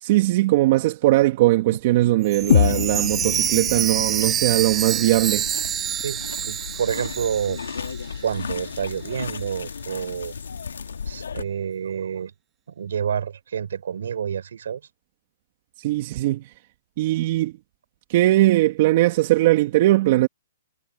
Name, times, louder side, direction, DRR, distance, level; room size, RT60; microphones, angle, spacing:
voice 1, 0.0-5.5 15.8-16.4 17.0-17.5 18.1-20.3, right 17 dB, 45° right, 1.8 m, -19 dB
Chime, 2.2-8.2 8.5-8.6 9.2-9.3, right 10 dB, 20° right, 0.7 m, -27 dB
sound 1, 2.4-11.4, left 6 dB, 90° left, 1.9 m, -35 dB
sound 2, 2.5-6.5, left 9 dB, 65° left, 1.8 m, -26 dB
voice 2, 6.0-7.6 8.2-10.4 11.1-12.3 12.7-14.8, right 8 dB, 75° right, 4.4 m, -28 dB
hypercardioid pair, 145°, 0 cm